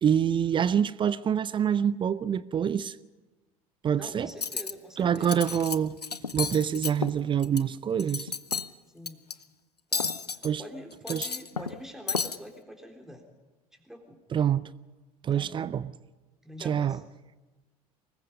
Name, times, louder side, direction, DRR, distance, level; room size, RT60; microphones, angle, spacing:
voice 1, 0.0-3.0 3.8-4.3 5.0-5.9 6.3-8.3 10.4-10.6 11.1-11.3 14.3-14.7 15.2-15.9 16.6-17.0, right 8 dB, 25° right, 0.6 m, -26 dB
voice 2, 4.0-5.4 8.9-9.2 9.9-10.2 10.6-13.3 13.7-14.2 15.3-15.7 16.4-17.0, equal, ahead, 3.8 m, -45 dB
Cutlery silverware, 4.3-4.7 5.2-5.8 6.0-7.6 8.0-8.7 9.1-9.3 9.9-10.5 10.9-11.8 12.1-12.4, left 5 dB, 85° left, 0.6 m, -32 dB
24.5 x 20.5 x 5.3 m
figure-of-eight pair, 70°, 20 cm